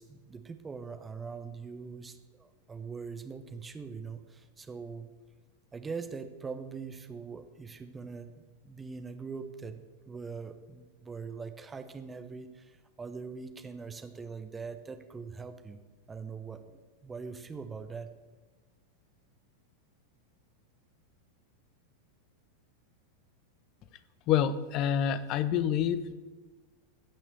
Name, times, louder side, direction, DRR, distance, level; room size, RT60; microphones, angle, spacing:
voice 1, 0.0-5.1 5.7-15.8 16.1-18.1, right 5 dB, 15° right, 8 dB, 1.0 m, -42 dB
voice 2, 24.3-26.1, left 9 dB, 40° left, 14 dB, 0.7 m, -27 dB
16.0 x 6.2 x 6.8 m, 1.3 s
figure-of-eight pair, 90°, 0 cm